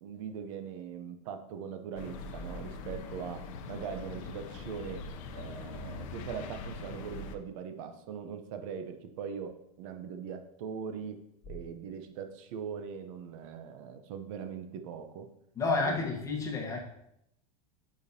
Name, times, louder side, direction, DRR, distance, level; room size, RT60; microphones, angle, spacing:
voice 1, 0.0-5.0 5.3-15.3 15.8-16.0, right 7 dB, 55° right, 7 dB, 0.8 m, -41 dB
sound 1, 2.0-7.4, left 3 dB, 60° left, 0.7 m, -42 dB
voice 2, 15.5-16.8, left 3 dB, 15° left, 0 dB, 1.2 m, -30 dB
8.9 x 5.2 x 2.8 m, 0.80 s
supercardioid pair, 160°, 20 cm